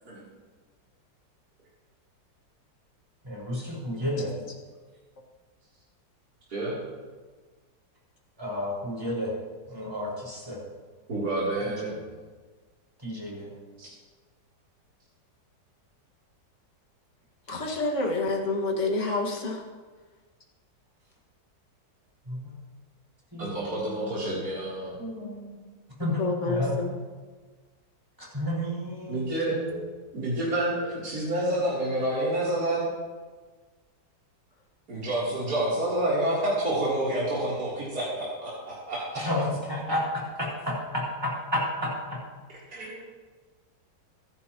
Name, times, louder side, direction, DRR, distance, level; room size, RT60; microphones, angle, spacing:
voice 1, 3.3-4.3 8.4-9.3 9.7-10.6 13.0-13.5 22.3-22.4 23.3-23.6 25.0-25.5 26.0-26.7 28.2-29.8 39.2-39.4 39.7-40.0 40.6-41.9, left 1 dB, 15° right, -4 dB, 4.9 m, -31 dB
voice 2, 11.1-12.0 13.8-13.9 23.4-24.9 29.1-29.6 30.1-32.9 34.9-39.3 42.7-43.0, right 1 dB, 55° right, -9 dB, 4.0 m, -28 dB
voice 3, 17.5-19.6 26.2-26.9, left 3 dB, 40° left, 0 dB, 2.2 m, -28 dB
24.0 x 11.5 x 3.0 m, 1.4 s
omnidirectional pair, 1.9 m